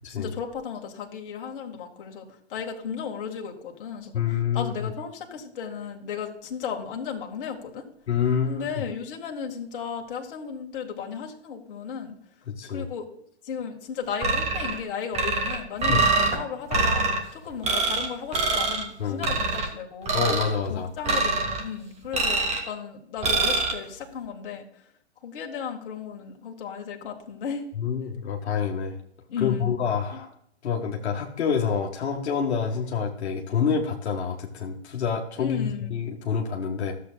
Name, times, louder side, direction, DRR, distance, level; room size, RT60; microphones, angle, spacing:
voice 1, 0.0-7.8 8.5-12.2 12.7-13.1 13.4-17.1 17.3-20.3 20.7-24.7 25.2-27.7 29.3-29.8 30.1-30.2 35.4-35.9, left 7 dB, 50° left, 2 dB, 1.9 m, -35 dB
voice 2, 4.1-4.9 8.1-8.8 12.5-12.9 15.9-16.0 19.0-19.2 20.1-20.9 27.8-28.9 29.4-30.3 30.6-36.9, left 7 dB, 75° left, 1 dB, 1.5 m, -27 dB
sound 1, 14.2-14.8 15.1-16.4 16.7-17.2 17.6-18.1 18.3-18.8 19.2-19.7 20.1-20.5 21.1-21.6 22.1-22.7 23.2-23.7, right 3 dB, 20° right, 1.8 m, -24 dB
13.5 x 7.8 x 2.3 m, 0.71 s
hypercardioid pair, 125°, 33 cm